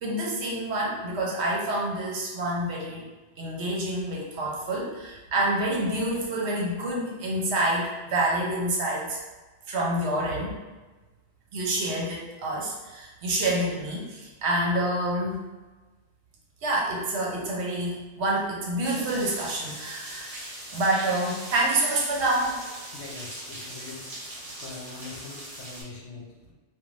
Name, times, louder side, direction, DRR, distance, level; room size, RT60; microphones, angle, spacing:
voice 1, 0.0-3.1 3.4-9.2 9.7-10.5 11.5-15.4 16.6-20.3 20.7-22.6, right 1 dB, 70° right, -2 dB, 0.9 m, -27 dB
sound 1, 18.8-25.8, right 1 dB, 35° right, 0.8 m, -40 dB
voice 2, 22.2-24.1 24.4-26.5, left 3 dB, 70° left, -2 dB, 0.9 m, -43 dB
2.5 x 2.3 x 3.1 m, 1.2 s
omnidirectional pair, 1.2 m